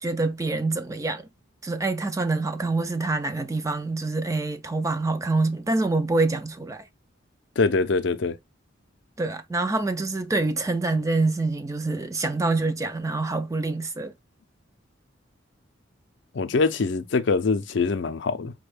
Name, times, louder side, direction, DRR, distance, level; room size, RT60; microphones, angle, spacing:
voice 1, 0.0-1.3 1.6-6.9 9.2-14.1, right 3 dB, 15° right, 0.3 m, -26 dB
voice 2, 7.6-8.4 16.3-18.5, left 4 dB, 65° left, 0.5 m, -23 dB
5.2 x 2.2 x 3.2 m
head